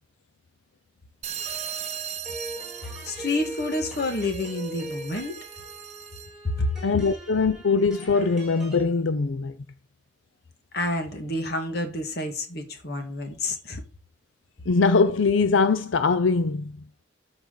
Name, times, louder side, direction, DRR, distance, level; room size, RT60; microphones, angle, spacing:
sound 1, 1.2-6.4, right 9 dB, 35° right, 0.6 m, -38 dB
sound 2, 1.4-8.8, right 1 dB, 5° right, 4.4 m, -41 dB
voice 1, 2.8-5.4 6.4-6.7 10.7-13.8, left 2 dB, 55° left, 1.9 m, -29 dB
voice 2, 6.8-9.5 14.7-16.8, left 4 dB, 90° left, 0.5 m, -22 dB
13.0 x 4.9 x 4.0 m
head